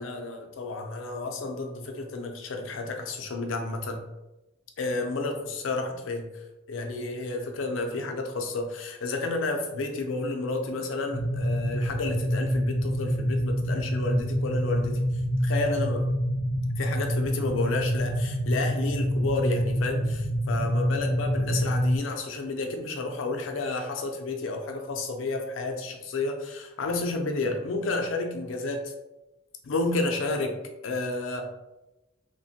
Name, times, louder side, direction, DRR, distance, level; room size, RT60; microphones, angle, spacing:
voice 1, 0.0-4.0 4.8-6.3 6.7-15.0 15.4-16.1 16.8-28.9 29.6-30.6 30.8-31.5, left 3 dB, 80° left, 4 dB, 0.5 m, -31 dB
sound 1, 11.1-22.0, equal, 80° right, 0.8 m, -27 dB
2.9 x 2.1 x 2.7 m, 0.97 s
head